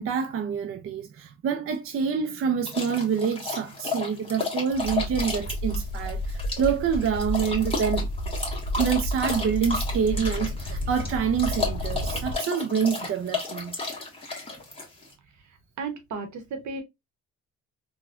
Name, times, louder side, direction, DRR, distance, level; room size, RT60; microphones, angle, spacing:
voice 1, 0.0-8.1 8.8-13.7, right 7 dB, 45° right, 0.5 m, -27 dB
sound 1, 2.7-15.1, left 4 dB, 20° left, 1.3 m, -33 dB
sound 2, 4.7-12.3, equal, 55° left, 0.7 m, -31 dB
voice 2, 15.8-16.8, right 4 dB, 70° right, 1.0 m, -34 dB
3.5 x 2.3 x 2.4 m
cardioid pair, 90°, 30 cm